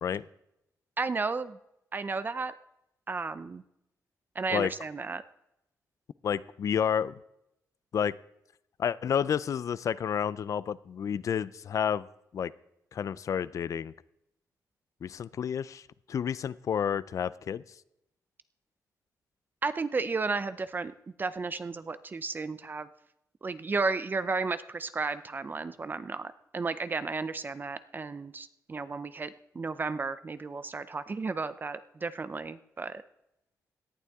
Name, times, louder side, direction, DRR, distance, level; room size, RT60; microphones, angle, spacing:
voice 1, 1.0-1.6 1.9-2.5 3.1-3.6 4.4-5.2 19.6-20.9 21.2-22.9 23.4-33.0, right 4 dB, 30° right, 13 dB, 0.5 m, -33 dB
voice 2, 6.2-7.2 7.9-8.2 8.8-12.1 12.3-12.5 12.9-13.9 15.0-15.8 16.1-17.6, left 8 dB, 55° left, 18 dB, 0.4 m, -30 dB
18.0 x 11.0 x 3.6 m, 0.82 s
cardioid pair, 115°, 7 cm